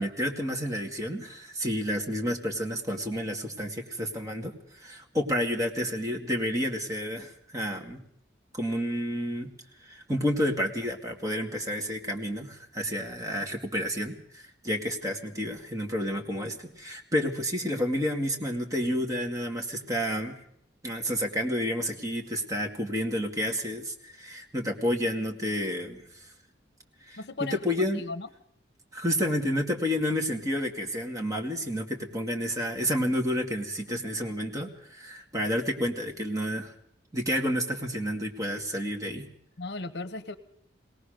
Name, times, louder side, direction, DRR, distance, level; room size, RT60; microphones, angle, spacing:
voice 1, 0.0-8.0 8.5-9.5 9.8-20.4 20.8-26.3 27.0-28.0 28.9-36.7 37.1-39.3, equal, 20° right, 2 dB, 2.1 m, -30 dB
voice 2, 27.2-27.6 28.0-28.3 39.6-40.4, left 3 dB, 60° left, 13 dB, 0.9 m, -35 dB
21.5 x 18.0 x 6.6 m, 0.70 s
head